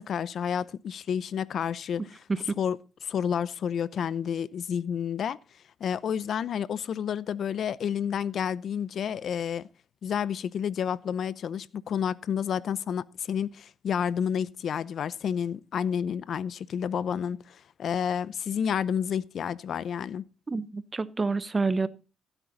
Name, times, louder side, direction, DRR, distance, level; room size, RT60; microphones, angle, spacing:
voice 1, 0.0-2.2 2.6-2.8 3.0-5.4 5.8-9.7 10.0-20.2, left 8 dB, 60° left, 0.7 m, -30 dB
voice 2, 20.5-21.9, right 3 dB, 25° right, 0.9 m, -28 dB
16.0 x 9.1 x 4.1 m
cardioid pair, 90°, 0 cm